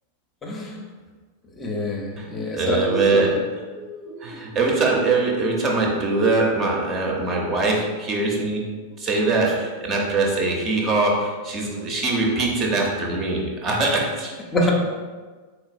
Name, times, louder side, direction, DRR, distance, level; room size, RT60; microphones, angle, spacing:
voice 1, 0.4-0.8 1.6-3.3 9.5-9.6 14.5-14.7, left 1 dB, 20° left, -1 dB, 0.6 m, -26 dB
voice 2, 2.2-8.6 9.0-14.3, right 3 dB, 30° right, -1 dB, 0.7 m, -22 dB
4.2 x 3.4 x 2.5 m, 1.4 s
figure-of-eight pair, 90°, 0 cm